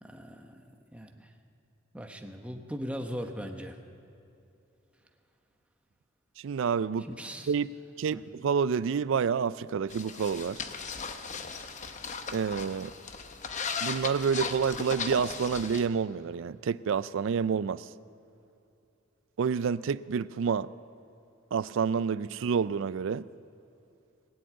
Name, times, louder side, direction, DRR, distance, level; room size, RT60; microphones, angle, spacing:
voice 1, 0.0-0.6 0.9-1.3 1.9-3.7 7.1-7.5 8.1-8.2, equal, 5° right, 1.0 m, -39 dB
voice 2, 6.4-7.1 7.5-10.6 12.3-12.9 13.8-17.9 19.4-20.7 21.5-23.3, right 6 dB, 65° right, 0.4 m, -29 dB
sound 1, 9.9-15.8, left 5 dB, 35° left, 0.8 m, -37 dB
20.5 x 7.8 x 8.8 m
head